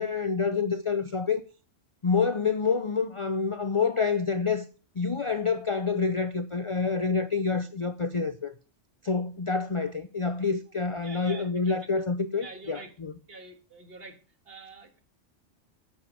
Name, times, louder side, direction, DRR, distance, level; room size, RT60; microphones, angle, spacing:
voice 1, 0.0-1.4 2.0-4.6 5.0-8.5 9.0-13.1, left 5 dB, 45° left, 0.4 m, -27 dB
voice 2, 11.0-11.9 12.4-12.9 13.3-14.2 14.5-15.0, right 3 dB, 50° right, 1.9 m, -46 dB
9.9 x 7.6 x 5.0 m
omnidirectional pair, 1.3 m